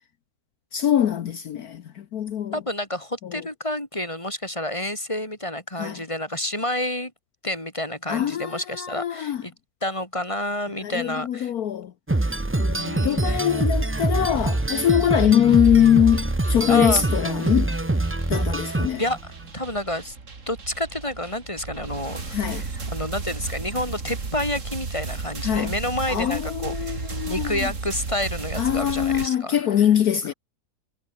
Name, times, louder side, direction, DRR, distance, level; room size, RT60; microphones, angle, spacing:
voice 1, 0.7-2.5 3.3-3.4 5.8-6.0 8.1-9.4 10.8-11.9 12.6-17.7 18.3-19.0 22.3-22.6 25.4-25.7 26.1-27.7 28.6-30.3, left 10 dB, 65° left, 1.4 m, -22 dB
voice 2, 2.5-7.1 7.4-9.5 9.8-11.5 12.7-13.5 15.2-15.5 16.7-17.0 18.5-20.1 20.5-29.8, left 1 dB, 20° left, 3.2 m, -29 dB
sound 1, 12.1-19.3, right 2 dB, 15° right, 0.4 m, -24 dB
sound 2, 14.2-29.3, right 4 dB, 45° right, 2.8 m, -35 dB
omnidirectional pair, 1.8 m